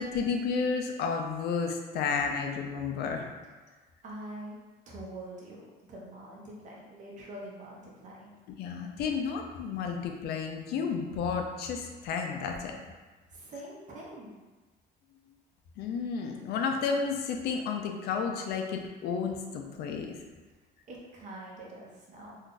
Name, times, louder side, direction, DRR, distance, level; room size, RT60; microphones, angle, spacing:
voice 1, 0.0-3.3 8.6-12.8 15.8-20.1, left 5 dB, 70° left, 3 dB, 0.5 m, -32 dB
voice 2, 4.0-4.6 4.9-5.6 5.9-8.3 13.3-14.4 20.9-22.4, right 1 dB, 45° right, -3 dB, 0.8 m, -44 dB
2.6 x 2.3 x 3.8 m, 1.3 s
cardioid pair, 145°, 17 cm